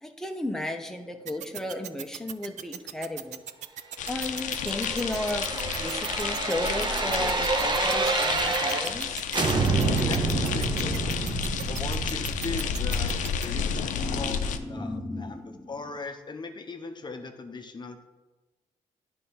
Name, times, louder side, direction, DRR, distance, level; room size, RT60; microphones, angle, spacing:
voice 1, 0.0-3.4 4.1-9.3 13.5-15.7, left 1 dB, 5° left, 4 dB, 0.8 m, -34 dB
sound 1, 1.3-13.5, right 10 dB, 70° right, 0.4 m, -38 dB
sound 2, 4.0-14.6, left 7 dB, 85° left, 0.5 m, -31 dB
sound 3, 4.3-9.0 9.3-14.2 14.5-14.6, right 3 dB, 35° right, 0.9 m, -29 dB
voice 2, 10.1-11.3 11.7-18.1, left 3 dB, 35° left, 5 dB, 0.7 m, -39 dB
9.2 x 3.5 x 5.5 m, 1.2 s
cardioid pair, 75°, 13 cm